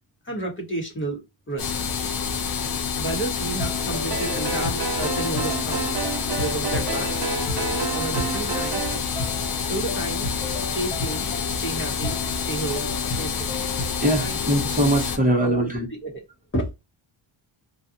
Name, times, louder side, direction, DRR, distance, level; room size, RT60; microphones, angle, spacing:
voice 1, 0.2-1.2 1.5-1.7 3.0-6.1 6.4-7.1 7.9-8.8 9.7-10.3 10.7-13.5 14.2-14.6 15.1-15.7 16.0-16.1 16.5-16.7, right 1 dB, 25° left, 1.0 m, -31 dB
sound 1, 1.6-15.2, left 6 dB, 50° left, 0.6 m, -28 dB
sound 2, 3.6-14.3, left 3 dB, 75° left, 1.1 m, -35 dB
sound 3, 4.1-9.0, right 5 dB, 50° right, 0.9 m, -30 dB
voice 2, 14.0-15.9, right 1 dB, 15° right, 0.8 m, -22 dB
2.4 x 2.3 x 2.6 m
cardioid pair, 120°, 48 cm